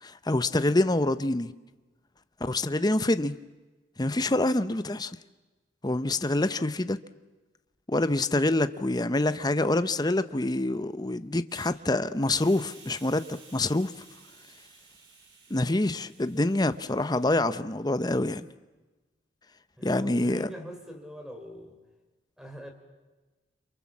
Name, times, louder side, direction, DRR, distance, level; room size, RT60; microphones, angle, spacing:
voice 1, 0.0-1.5 2.4-3.4 4.0-5.1 5.8-7.0 7.9-13.9 15.5-18.4 19.8-20.5, left 2 dB, 20° left, 0.8 m, -26 dB
Hiss, 11.5-11.7 12.3-17.4, right 5 dB, 65° right, 5.7 m, -54 dB
voice 2, 19.8-21.8 22.4-22.7, equal, 5° right, 4.4 m, -42 dB
29.5 x 27.5 x 7.3 m
head